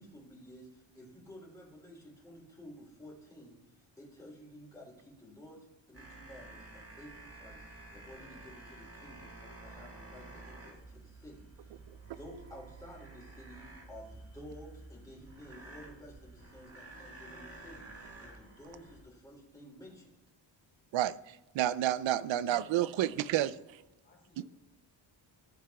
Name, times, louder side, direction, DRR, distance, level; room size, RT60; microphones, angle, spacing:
voice 1, 0.0-3.6 4.0-5.6 5.9-20.1, equal, 10° left, -6 dB, 3.0 m, -52 dB
sound 1, 5.9-19.0, right 2 dB, 30° right, 1.7 m, -51 dB
voice 2, 20.9-23.6 24.4-24.5, right 12 dB, 80° right, 17 dB, 0.5 m, -30 dB
voice 3, 22.2-23.6 24.0-24.4, left 2 dB, 25° left, -2 dB, 2.7 m, -64 dB
14.5 x 7.5 x 2.3 m, 0.96 s
wide cardioid pair, 145°, 45 cm